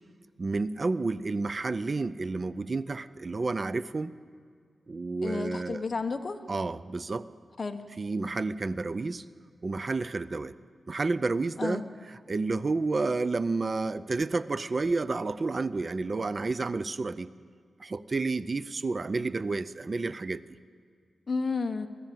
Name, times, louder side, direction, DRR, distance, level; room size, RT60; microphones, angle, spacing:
voice 1, 0.4-4.1 4.9-5.8 6.5-7.3 8.0-9.3 9.6-10.5 10.9-11.8 12.1-17.3 17.8-20.4, right 3 dB, 35° right, 15 dB, 0.5 m, -30 dB
voice 2, 5.2-6.4 7.6-7.8 11.6-11.8 21.3-21.9, left 4 dB, 35° left, 6 dB, 1.2 m, -31 dB
22.0 x 15.0 x 9.1 m, 2.2 s
wide cardioid pair, 120°, 0 cm